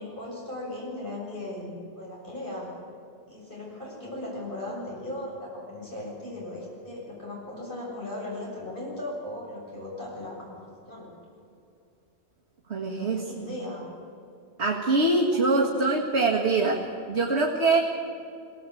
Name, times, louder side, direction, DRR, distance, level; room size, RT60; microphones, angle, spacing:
voice 1, 0.0-2.7 3.3-10.5 10.9-11.1 12.8-13.8 15.3-15.8, left 1 dB, 50° left, -4 dB, 7.2 m, -37 dB
voice 2, 12.7-13.3 14.6-17.8, right 3 dB, 85° right, -2 dB, 2.1 m, -24 dB
23.0 x 17.5 x 8.4 m, 2.6 s
omnidirectional pair, 1.1 m